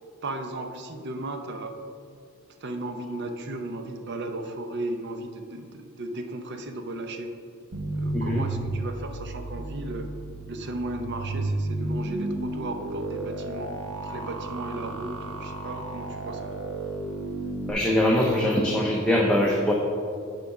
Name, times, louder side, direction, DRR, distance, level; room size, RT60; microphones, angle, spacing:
voice 1, 0.2-1.7 2.6-7.4 7.9-10.1 10.5-13.7 13.9-16.5, right 2 dB, 50° right, 6 dB, 0.7 m, -35 dB
sound 1, 7.7-17.7, right 2 dB, 90° right, 0.9 m, -33 dB
voice 2, 8.1-8.4 17.7-19.7, left 1 dB, 5° left, -2 dB, 0.6 m, -22 dB
9.1 x 3.8 x 5.8 m, 2.3 s
head